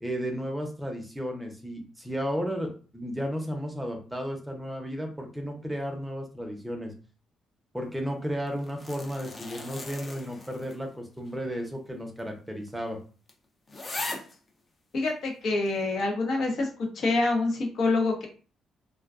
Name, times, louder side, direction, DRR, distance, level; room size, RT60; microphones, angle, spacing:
voice 1, 0.0-6.9 7.7-13.0, equal, 5° right, 2 dB, 0.7 m, -33 dB
sound 1, 8.5-10.9 11.3-11.4 12.2-12.3 12.7-12.8 13.3-13.4 13.7-14.4 15.1-15.2, left 2 dB, 30° left, 0.6 m, -39 dB
voice 2, 14.9-16.7 16.9-18.3, left 3 dB, 65° left, 0 dB, 0.8 m, -26 dB
2.3 x 2.2 x 2.4 m, 0.38 s
cardioid pair, 90°, 0 cm